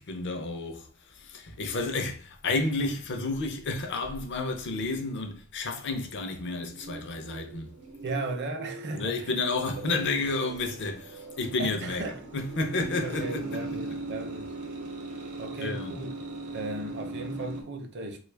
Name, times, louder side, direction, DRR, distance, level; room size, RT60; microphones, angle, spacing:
voice 1, 0.0-7.7 8.9-13.8 15.6-16.0, left 3 dB, 55° left, 0.6 m, -31 dB
sound 1, 6.0-17.6, right 2 dB, 85° right, 0.7 m, -40 dB
voice 2, 8.0-9.3 9.8-9.9 11.6-12.2 13.0-14.5 15.4-16.2 16.5-18.2, right 2 dB, 50° right, 0.6 m, -36 dB
3.2 x 2.3 x 3.3 m
head